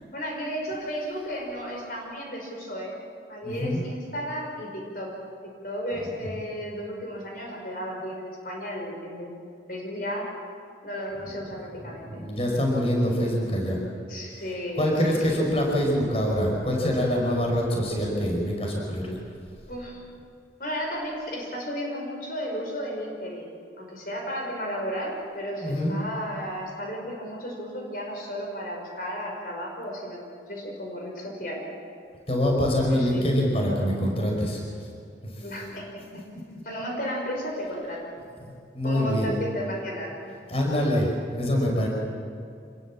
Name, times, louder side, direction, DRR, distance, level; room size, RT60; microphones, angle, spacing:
voice 1, 0.1-3.0 3.3-5.1 5.6-9.4 9.7-10.3 10.8-12.2 14.1-15.4 19.7-20.0 20.6-23.5 23.8-30.2 30.5-31.6 32.9-33.2 35.4-36.0 36.6-38.1 38.8-40.1, equal, 50° left, 0 dB, 5.3 m, -34 dB
voice 2, 3.4-3.8 6.0-6.1 12.1-13.8 14.8-19.2 25.6-25.9 32.3-34.6 36.5-36.6 38.7-39.3 40.5-41.9, equal, 35° left, -1 dB, 5.3 m, -25 dB
26.5 x 21.0 x 7.5 m, 2.3 s
head